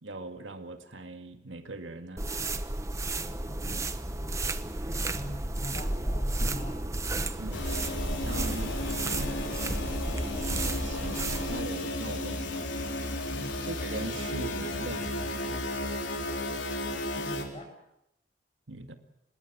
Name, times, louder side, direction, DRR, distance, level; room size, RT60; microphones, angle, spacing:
voice 1, 0.0-2.3 3.6-3.9 6.4-6.6 7.2-7.7 8.2-8.8 10.5-12.7 13.6-15.7 18.7-18.9, right 2 dB, 90° right, 6 dB, 2.1 m, -41 dB
sound 1, 2.2-11.7, right 2 dB, 15° right, 0.9 m, -33 dB
sound 2, 4.0-15.6, equal, 40° right, 6.8 m, -51 dB
voice 2, 5.1-6.8 9.1-9.4 13.3-13.5 17.2-17.7, equal, 30° left, 4 dB, 7.0 m, -42 dB
sound 3, 7.5-17.5, left 1 dB, 85° left, 3.9 m, -33 dB
26.0 x 20.5 x 7.4 m, 0.84 s
head